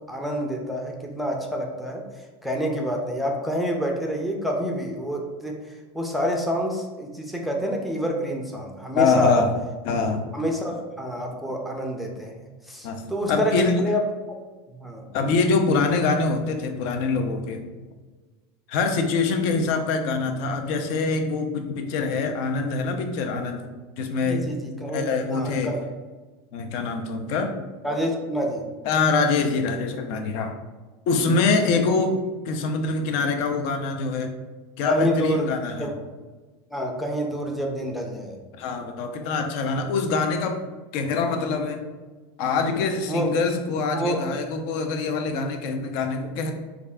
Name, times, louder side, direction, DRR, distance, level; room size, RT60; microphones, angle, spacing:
voice 1, 0.1-2.0 2.4-5.6 5.9-9.4 10.3-14.0 14.7-15.1 24.2-25.0 25.3-25.8 27.8-28.6 34.8-35.5 35.8-36.0 36.7-38.4 43.1-43.3 43.9-44.2, equal, ahead, 0 dB, 0.4 m, -27 dB
voice 2, 8.9-9.6 9.8-10.2 12.8-13.0 13.3-13.8 15.1-17.6 18.7-23.6 24.0-24.4 24.9-25.7 26.5-27.5 28.9-30.5 31.1-32.2 32.4-34.3 34.8-35.9 38.6-40.6 40.9-41.8 42.4-46.5, left 4 dB, 60° left, 5 dB, 0.5 m, -24 dB
3.5 x 2.4 x 3.4 m, 1.3 s
supercardioid pair, 135°, 12 cm